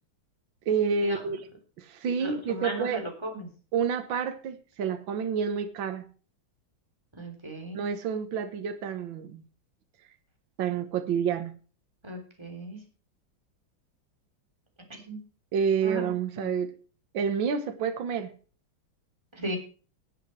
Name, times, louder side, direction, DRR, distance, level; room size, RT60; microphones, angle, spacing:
voice 1, 0.7-1.4 1.8-3.0 3.7-6.0 7.7-9.4 10.6-11.5 15.5-16.7 17.1-18.3, right 6 dB, 70° right, 8 dB, 1.9 m, -28 dB
voice 2, 2.2-3.5 7.1-7.8 12.0-12.8 14.9-15.2 15.8-16.5 19.3-19.6, right 1 dB, 10° right, 3 dB, 3.6 m, -36 dB
18.0 x 8.4 x 4.7 m, 0.39 s
omnidirectional pair, 2.3 m